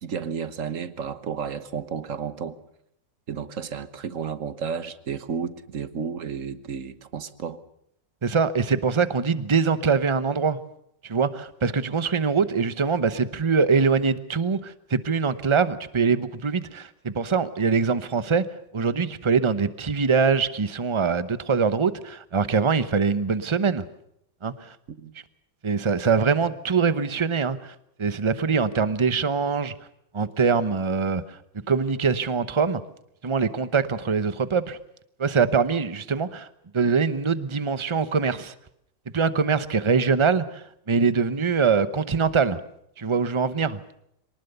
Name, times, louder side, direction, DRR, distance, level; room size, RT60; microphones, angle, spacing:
voice 1, 0.0-2.6 3.3-7.6 25.0-25.1, right 6 dB, 50° right, 1.3 m, -32 dB
voice 2, 8.2-10.6 11.0-18.4 18.7-23.8 24.4-24.7 25.6-29.7 30.1-31.4 31.7-32.8 33.2-34.8 35.2-36.5 36.7-38.5 39.1-42.6 43.0-43.8, right 5 dB, 35° right, 0.5 m, -23 dB
23.5 x 19.5 x 6.8 m
omnidirectional pair, 2.0 m